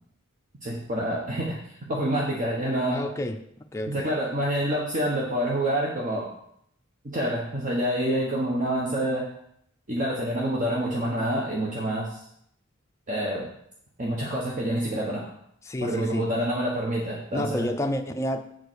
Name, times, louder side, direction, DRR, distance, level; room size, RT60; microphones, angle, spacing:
voice 1, 0.6-1.6 1.9-3.0 3.9-6.3 7.0-9.2 9.9-12.2 13.1-13.5 14.0-15.2 15.8-17.6, right 1 dB, 40° right, -3 dB, 1.3 m, -27 dB
voice 2, 2.9-3.4 3.7-4.1 15.6-16.3 17.3-18.4, left 1 dB, 15° left, 4 dB, 0.5 m, -29 dB
7.7 x 5.0 x 6.3 m, 0.72 s
head